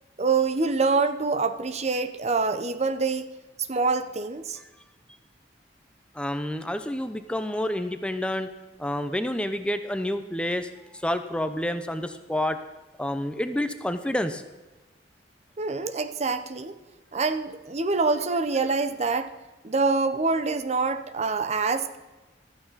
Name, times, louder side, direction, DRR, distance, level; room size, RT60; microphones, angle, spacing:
voice 1, 0.2-3.3 3.7-4.6 15.6-16.7 17.1-19.3 19.6-22.0, right 4 dB, 35° right, 10 dB, 0.8 m, -25 dB
voice 2, 6.1-8.5 8.8-10.7 11.0-12.6 13.0-14.4, left 1 dB, 5° left, 9 dB, 0.7 m, -28 dB
15.0 x 13.0 x 4.1 m, 1.1 s
head